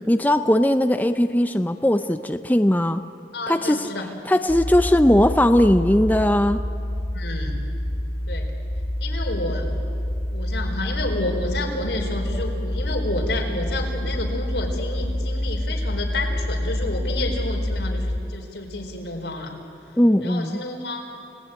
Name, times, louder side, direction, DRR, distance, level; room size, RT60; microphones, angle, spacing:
voice 1, 0.1-3.0 3.5-3.9 4.3-6.6 20.0-20.6, left 1 dB, 10° left, 9 dB, 0.5 m, -19 dB
voice 2, 3.3-4.1 7.1-7.6 8.3-8.5 9.0-9.7 10.3-19.5 20.2-21.0, left 2 dB, 85° left, 2 dB, 4.3 m, -30 dB
sound 1, 4.5-18.2, left 1 dB, 35° left, 1.6 m, -27 dB
29.0 x 18.5 x 9.0 m, 2.8 s
head